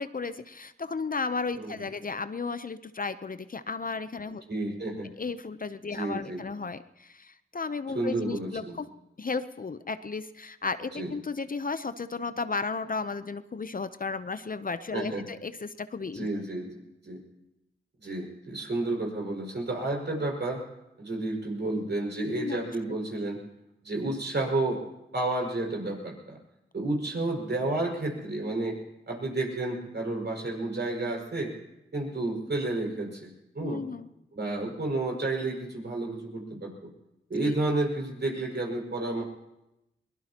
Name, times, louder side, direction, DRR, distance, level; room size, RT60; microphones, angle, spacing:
voice 1, 0.0-4.4 5.2-8.9 9.2-16.3 22.2-22.6 33.6-34.1 37.4-37.5, left 4 dB, 40° left, 12 dB, 0.7 m, -34 dB
voice 2, 4.5-5.1 5.9-6.4 7.9-8.7 11.0-11.1 14.9-15.2 16.1-17.2 18.0-20.6 21.0-23.4 23.8-24.8 25.1-26.4 26.7-28.8 29.1-31.5 31.9-33.8 34.3-36.9 37.3-39.2, right 2 dB, 55° right, 0 dB, 5.8 m, -31 dB
22.0 x 19.0 x 3.0 m, 0.90 s
cardioid pair, 45°, 21 cm